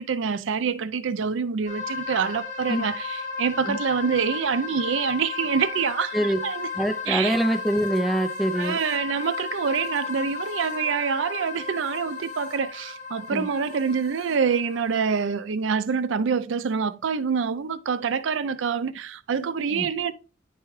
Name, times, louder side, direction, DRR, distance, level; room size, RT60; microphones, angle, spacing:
voice 1, 0.0-7.4 8.5-20.1, right 6 dB, 90° right, 0.4 m, -26 dB
sound 1, 1.7-15.2, left 5 dB, 50° left, 3.8 m, -34 dB
voice 2, 6.8-8.8 13.3-13.5 19.7-19.9, right 1 dB, ahead, 0.5 m, -24 dB
10.0 x 4.7 x 3.1 m
head